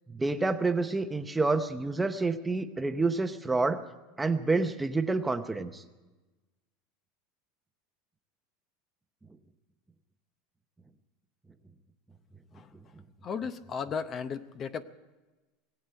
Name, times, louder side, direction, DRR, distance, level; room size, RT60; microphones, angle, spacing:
voice 1, 0.1-3.8 4.2-5.8, right 3 dB, 10° right, 9 dB, 0.8 m, -28 dB
voice 2, 13.2-14.8, left 6 dB, 35° left, 12 dB, 0.7 m, -35 dB
19.0 x 8.1 x 9.0 m, 1.2 s
supercardioid pair, 125°, 0 cm